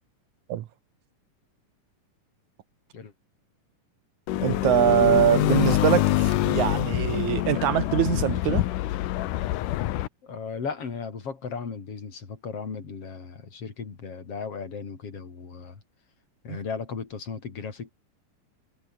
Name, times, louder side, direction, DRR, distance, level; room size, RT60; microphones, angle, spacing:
sound 1, 4.3-10.1, left 15 dB, 85° left, 2.5 m, -25 dB
voice 1, 4.4-8.6 16.5-16.6, right 12 dB, 70° right, 2.3 m, -23 dB
voice 2, 10.2-15.8 16.4-17.9, left 5 dB, 45° left, 4.5 m, -36 dB
omnidirectional pair, 3.7 m